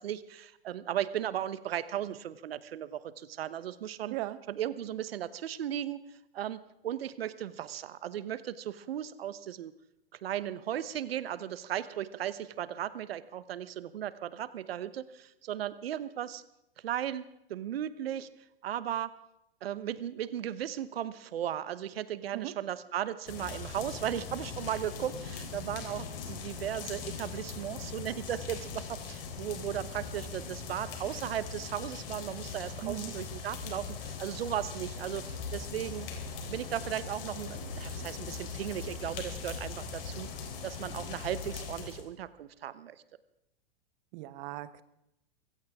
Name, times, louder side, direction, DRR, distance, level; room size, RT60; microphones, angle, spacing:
voice 1, 0.0-4.1 4.6-6.0 6.3-9.7 10.2-16.4 16.8-17.2 17.5-18.3 18.6-19.1 19.6-36.1 36.5-40.3 40.6-43.0, right 11 dB, 75° right, 15 dB, 1.2 m, -36 dB
voice 2, 4.1-4.4 22.3-22.6 32.8-33.1 44.1-44.8, right 16 dB, 50° right, 15 dB, 1.2 m, -38 dB
sound 1, 23.3-42.0, left 5 dB, 65° left, 3.9 m, -40 dB
23.5 x 16.0 x 3.7 m, 0.83 s
hypercardioid pair, 115°, 30 cm